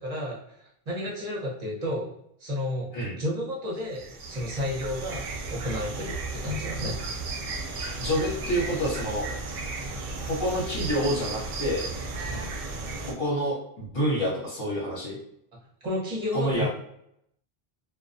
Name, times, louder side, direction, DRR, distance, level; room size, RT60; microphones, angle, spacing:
voice 1, 0.0-2.1 2.4-7.0 12.3-12.5 15.8-16.7, left 1 dB, 40° right, -4 dB, 0.9 m, -32 dB
sound 1, 3.8-13.1, right 3 dB, 70° right, 0.7 m, -34 dB
voice 2, 8.0-9.3 10.3-11.9 13.0-15.2 16.3-16.7, equal, 55° left, -6 dB, 1.1 m, -28 dB
2.3 x 2.2 x 2.5 m, 0.73 s
omnidirectional pair, 1.0 m